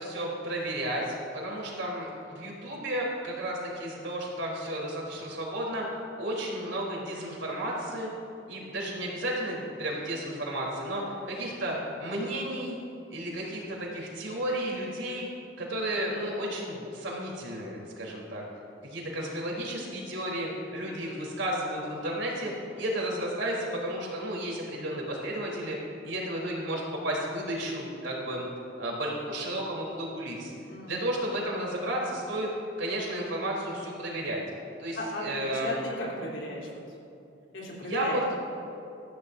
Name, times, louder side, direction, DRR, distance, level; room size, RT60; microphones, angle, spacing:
voice 1, 0.0-8.1 8.5-12.8 13.1-15.3 15.6-18.4 18.8-25.8 26.0-28.5 28.8-30.5 30.9-32.5 32.8-34.4 34.8-35.7 37.8-38.2, right 1 dB, 75° right, -3 dB, 3.7 m, -33 dB
voice 2, 30.7-31.1 34.9-36.8 37.5-38.3, left 1 dB, 70° left, -4 dB, 3.7 m, -36 dB
20.5 x 14.5 x 2.7 m, 2.7 s
head